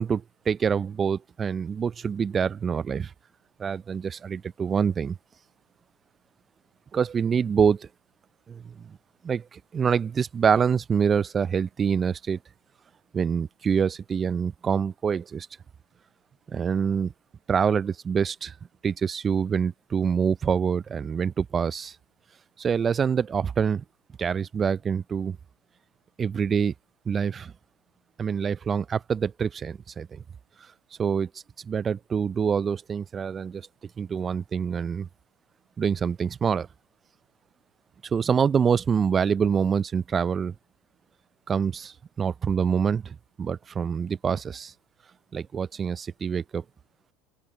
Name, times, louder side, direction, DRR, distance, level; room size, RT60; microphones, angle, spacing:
voice 1, 0.0-3.1 3.6-5.2 6.9-7.9 8.5-9.0 9.2-12.4 13.1-15.5 16.5-17.1 17.5-18.5 18.8-22.0 22.6-23.8 24.2-25.4 26.2-26.7 27.1-27.5 28.2-30.2 31.0-31.3 31.6-33.7 34.0-35.1 35.8-36.7 38.1-40.5 41.5-44.7 45.3-46.6, right 6 dB, 30° right, 0.4 m, -26 dB
open air
supercardioid pair, 95°, 0 cm